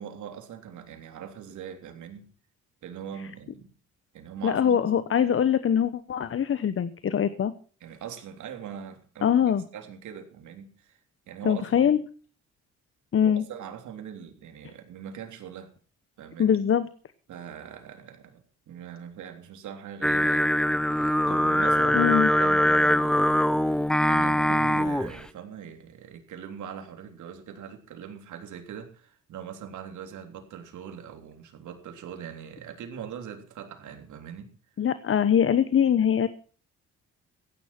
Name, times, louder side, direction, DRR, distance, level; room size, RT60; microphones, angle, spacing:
voice 1, 0.0-2.3 2.8-3.7 4.1-5.0 7.8-11.0 11.3-11.9 13.2-15.7 16.2-16.6 17.3-18.4 18.7-34.5, right 8 dB, 75° right, 4 dB, 3.5 m, -41 dB
voice 2, 4.4-7.5 9.2-9.6 11.4-12.0 13.1-13.4 16.4-16.9 21.9-22.3 34.8-36.3, left 8 dB, 45° left, 13 dB, 1.1 m, -23 dB
Singing, 20.0-25.2, left 1 dB, ahead, 0.6 m, -22 dB
15.5 x 10.5 x 6.0 m, 0.42 s
cardioid pair, 90°, 30 cm